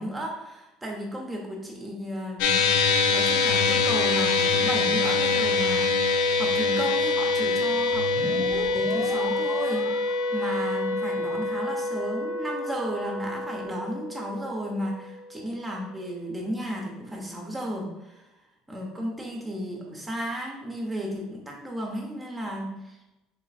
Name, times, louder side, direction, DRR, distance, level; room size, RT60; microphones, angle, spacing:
voice 1, 0.0-2.7 3.1-18.3 18.7-23.0, equal, 15° right, -1 dB, 1.0 m, -34 dB
sound 1, 2.4-14.9, left 4 dB, 75° left, 0.4 m, -25 dB
sound 2, 7.9-13.7, left 1 dB, 45° left, 0.8 m, -40 dB
3.3 x 3.0 x 4.2 m, 1.0 s
hypercardioid pair, 80°, 0 cm